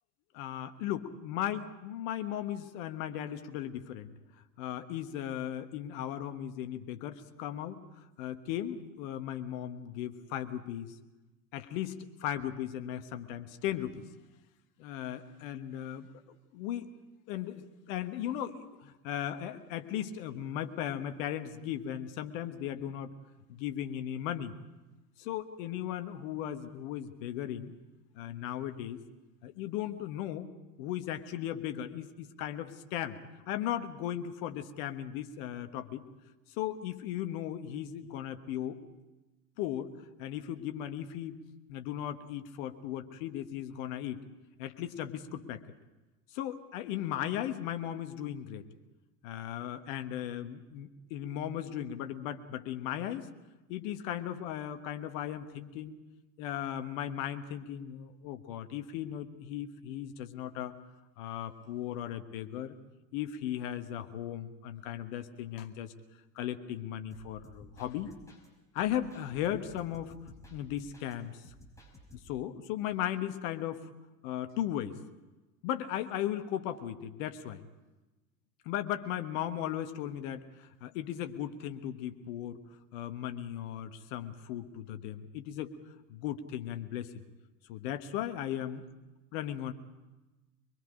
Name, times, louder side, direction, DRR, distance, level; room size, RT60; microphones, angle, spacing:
voice 1, 0.3-4.1 4.6-10.9 11.5-14.1 14.8-16.9 17.3-23.1 23.5-24.5 25.2-27.7 28.1-29.0 29.4-30.5 30.8-33.2 33.5-36.0 36.6-38.8 39.6-39.9 40.2-41.4 41.7-44.2 44.6-45.6 46.3-48.7 49.2-53.3 53.7-56.0 56.4-60.7 61.2-62.7 63.1-65.9 66.3-68.1 68.7-70.1 70.5-71.5 72.2-73.9 74.2-75.0 75.6-77.6 78.6-82.6 82.9-85.7 86.1-87.1 87.7-88.8 89.3-89.7, left 11 dB, 55° left, 8 dB, 1.5 m, -37 dB
sound 1, 67.1-68.5 68.8-71.1 71.4-72.4, equal, 5° left, 5.5 m, -55 dB
24.0 x 22.0 x 5.0 m, 1.1 s
figure-of-eight pair, 75°, 49 cm